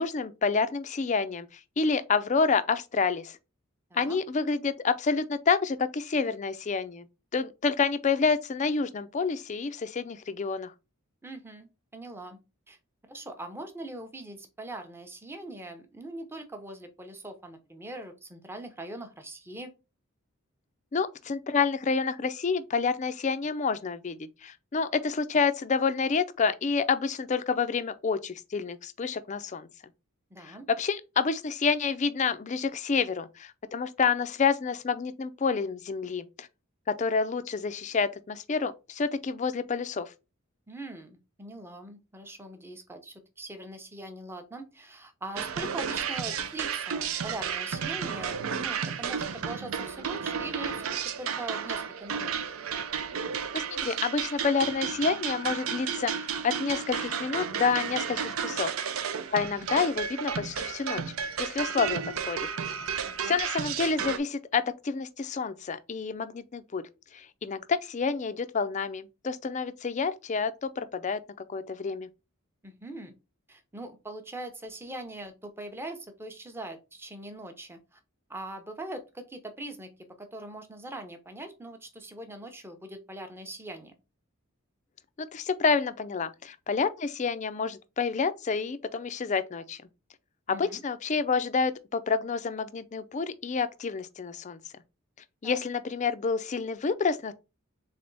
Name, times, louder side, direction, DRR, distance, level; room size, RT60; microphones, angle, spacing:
voice 1, 0.0-3.4 3.9-7.1 7.3-10.7 20.9-29.7 30.4-36.5 36.9-40.1 53.5-58.7 59.3-61.0 61.4-62.0 62.3-62.5 63.2-66.8 67.1-71.2 71.5-72.1 85.2-89.8 90.5-94.6 95.4-97.3, left 5 dB, 35° left, 0.4 m, -28 dB
voice 2, 3.9-4.2 11.2-12.4 12.7-12.8 13.1-19.7 30.3-30.7 40.7-50.9 51.2-52.3 59.7-59.9 63.0-63.4 72.6-73.1 73.5-78.0 78.3-79.9 80.2-83.9 90.5-90.8 95.4-95.6, right 2 dB, 10° right, 0.7 m, -42 dB
sound 1, 45.4-64.2, right 7 dB, 75° right, 0.5 m, -32 dB
3.6 x 3.4 x 3.9 m
head